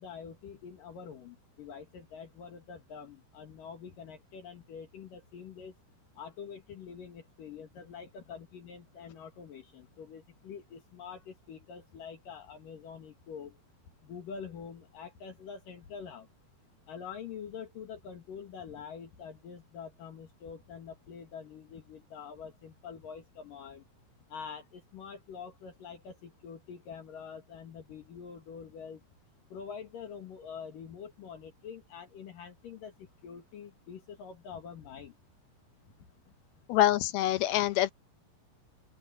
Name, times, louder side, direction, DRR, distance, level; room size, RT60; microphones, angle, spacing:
voice 1, 0.0-5.7 6.2-13.6 14.0-16.3 16.9-23.8 24.3-29.0 29.5-35.2 36.3-36.4, left 6 dB, 60° left, 3.1 m, -45 dB
voice 2, 36.7-37.9, left 13 dB, 75° left, 2.4 m, -25 dB
open air
omnidirectional pair, 5.0 m